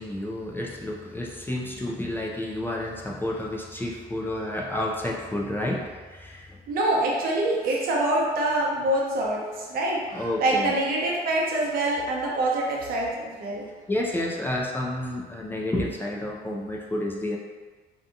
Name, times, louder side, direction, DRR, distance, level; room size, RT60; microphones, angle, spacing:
voice 1, 0.0-6.6 10.1-10.8 13.9-17.4, left 1 dB, 10° left, -2 dB, 0.3 m, -30 dB
voice 2, 6.7-13.7, right 1 dB, 60° right, -3 dB, 0.7 m, -25 dB
2.7 x 2.2 x 2.6 m, 1.4 s
cardioid pair, 110°, 17 cm